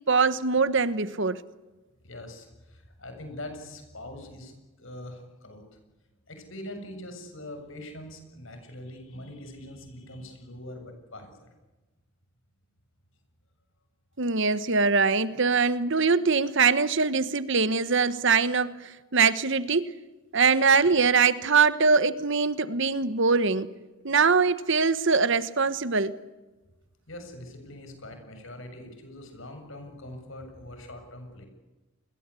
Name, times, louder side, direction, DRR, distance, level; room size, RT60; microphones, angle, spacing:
voice 1, 0.1-1.4 14.2-19.9 20.3-23.7 24.0-26.2, right 4 dB, 60° right, 1.3 m, -23 dB
voice 2, 2.0-4.5 4.8-5.7 6.3-11.5 27.1-31.5, left 1 dB, 65° left, 7.3 m, -43 dB
29.0 x 22.0 x 8.4 m
head